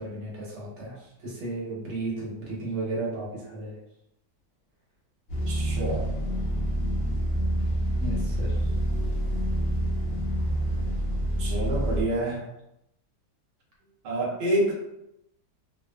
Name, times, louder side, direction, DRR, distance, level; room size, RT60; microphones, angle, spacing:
voice 1, 0.0-3.8 8.0-8.7 13.8-13.9, right 2 dB, 55° right, -4 dB, 1.0 m, -34 dB
sound 1, 5.3-12.0, right 1 dB, 50° left, 0.8 m, -27 dB
voice 2, 5.5-6.1 11.4-12.4 14.0-14.7, right 1 dB, 75° right, -4 dB, 0.5 m, -27 dB
2.7 x 2.3 x 2.2 m, 0.84 s
omnidirectional pair, 1.7 m